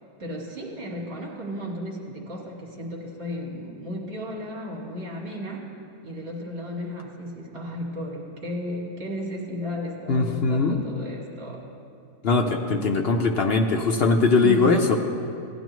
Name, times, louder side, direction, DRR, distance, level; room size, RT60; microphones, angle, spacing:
voice 1, 0.2-5.7 6.0-11.7 14.4-14.8, equal, 40° right, -3 dB, 2.0 m, -34 dB
voice 2, 10.1-10.8 12.2-15.0, left 3 dB, 60° left, 3 dB, 0.6 m, -21 dB
16.5 x 11.0 x 3.1 m, 2.6 s
omnidirectional pair, 1.7 m